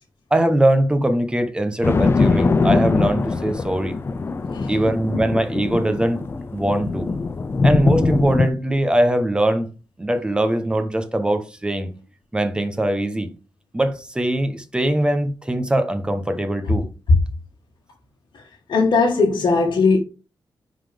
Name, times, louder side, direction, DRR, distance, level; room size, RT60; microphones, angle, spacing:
voice 1, 0.3-4.0 4.7-6.2 6.5-7.1 7.6-9.7 10.0-11.9 12.3-13.3 13.7-16.9, right 1 dB, 10° right, 0.8 m, -21 dB
sound 1, 1.8-8.5, left 4 dB, 30° left, 0.5 m, -22 dB
voice 2, 18.7-20.0, left 3 dB, 65° left, 1.5 m, -18 dB
10.0 x 3.9 x 3.4 m
wide cardioid pair, 165°, 8 cm